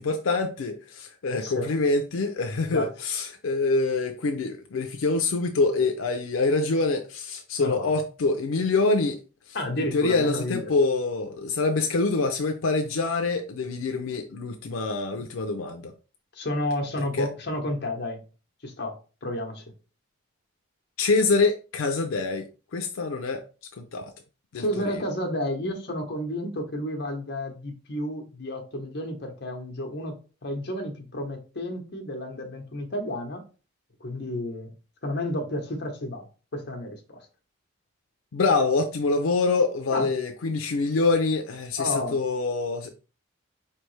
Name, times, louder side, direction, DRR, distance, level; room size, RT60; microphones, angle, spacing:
voice 1, 0.0-9.2 9.5-15.9 17.1-17.3 21.0-23.4 23.8-24.1 24.5-25.0 38.3-42.9, left 3 dB, 85° left, 0.5 m, -25 dB
voice 2, 1.3-1.7 2.7-2.9 7.6-7.9 9.5-10.7 16.3-18.2 18.6-19.0 19.2-19.6 24.6-30.2 30.4-33.4 34.0-34.7 35.0-36.3 36.5-37.2 39.9-40.1 41.8-42.2, left 1 dB, 55° left, 1.0 m, -31 dB
4.6 x 3.3 x 3.2 m
head